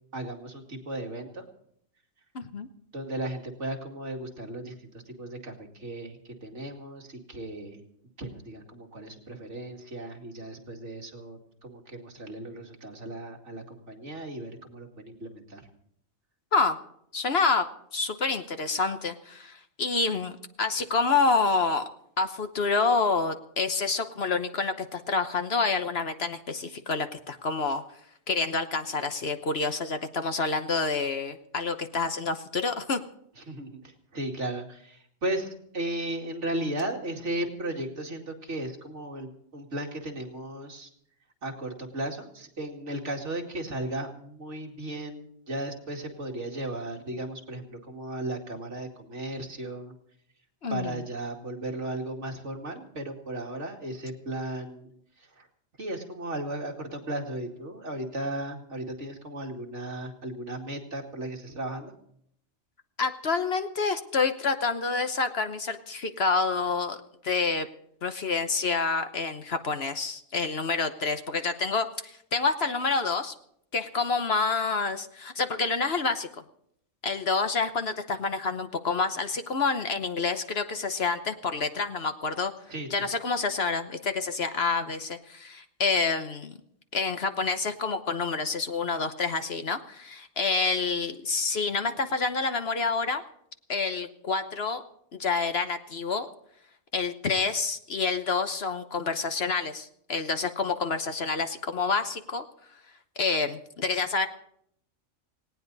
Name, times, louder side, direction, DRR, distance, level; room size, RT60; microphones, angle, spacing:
voice 1, 0.1-1.5 2.9-7.8 8.2-15.6 33.4-40.9 41.4-49.9 50.7-54.9 55.2-55.5 55.8-61.9 82.7-83.1, right 1 dB, 60° right, 1 dB, 2.6 m, -36 dB
voice 2, 2.3-2.7 16.5-16.8 17.1-21.8 22.2-27.8 28.3-33.0 50.6-51.0 63.0-67.0 67.2-67.7 68.0-73.3 73.7-76.3 77.0-82.5 82.9-86.6 86.9-93.2 93.7-94.8 95.1-96.3 96.9-102.4 103.2-104.3, left 4 dB, 55° left, 9 dB, 1.2 m, -28 dB
18.5 x 18.0 x 4.1 m, 0.69 s
omnidirectional pair, 1.4 m